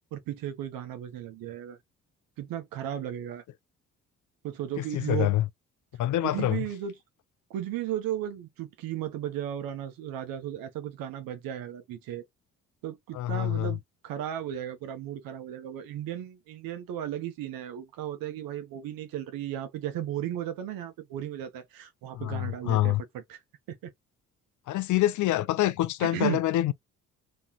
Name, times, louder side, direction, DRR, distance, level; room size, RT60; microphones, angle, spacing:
voice 1, 0.1-1.8 2.4-3.4 4.4-5.3 6.2-6.9 7.5-12.2 12.8-23.4 23.7-23.9 26.0-26.4, right 11 dB, 70° right, 1.1 m, -35 dB
voice 2, 4.8-5.4 6.0-6.6 13.1-13.7 22.1-23.0 24.7-26.7, left 14 dB, 55° left, 0.5 m, -26 dB
3.7 x 3.1 x 3.0 m
hypercardioid pair, 45°, 36 cm